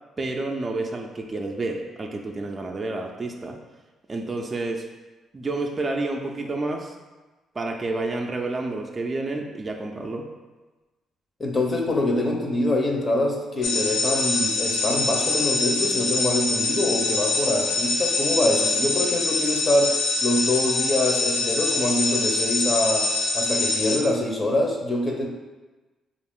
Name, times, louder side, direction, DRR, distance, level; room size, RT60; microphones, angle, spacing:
voice 1, 0.2-3.6 4.1-4.8 5.3-6.9 7.6-10.3, right 2 dB, 30° right, 1 dB, 0.4 m, -29 dB
voice 2, 11.4-19.9 20.2-23.1 23.3-25.3, left 1 dB, 30° left, 0 dB, 0.7 m, -24 dB
sound 1, 13.6-24.0, left 3 dB, 65° left, 0.7 m, -24 dB
4.8 x 2.5 x 3.6 m, 1.2 s
cardioid pair, 90°, 0 cm